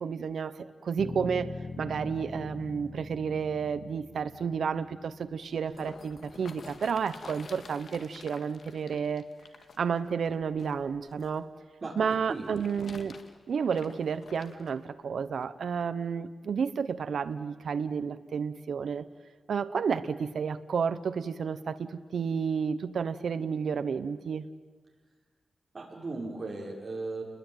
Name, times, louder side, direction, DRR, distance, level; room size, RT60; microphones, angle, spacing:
voice 1, 0.0-9.3 9.8-11.5 12.0-13.2 13.5-19.0 19.5-24.5, right 6 dB, 80° right, 11 dB, 0.8 m, -31 dB
Bass guitar, 1.0-5.3, left 3 dB, 35° left, 1.1 m, -42 dB
sound 1, 5.3-11.4 12.2-14.8 15.4-15.5, left 4 dB, 65° left, 2.0 m, -50 dB
voice 2, 25.7-27.2, right 3 dB, 35° right, 0 dB, 5.9 m, -36 dB
29.5 x 21.0 x 9.1 m, 1.4 s
wide cardioid pair, 125°, 0 cm